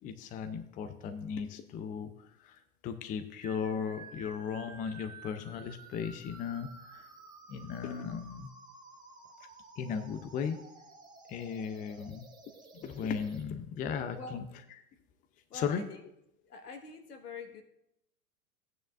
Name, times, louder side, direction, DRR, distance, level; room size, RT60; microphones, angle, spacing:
voice 1, 0.0-7.1 7.5-8.5 9.8-10.6 11.3-12.3 12.7-14.4 15.5-15.8, left 7 dB, 20° left, 9 dB, 0.5 m, -36 dB
sound 1, 3.4-13.4, right 3 dB, 10° right, 1.5 m, -53 dB
voice 2, 15.5-16.1 16.4-17.6, left 4 dB, 75° left, 6 dB, 1.5 m, -45 dB
14.0 x 9.3 x 2.5 m, 0.79 s
figure-of-eight pair, 100°, 46 cm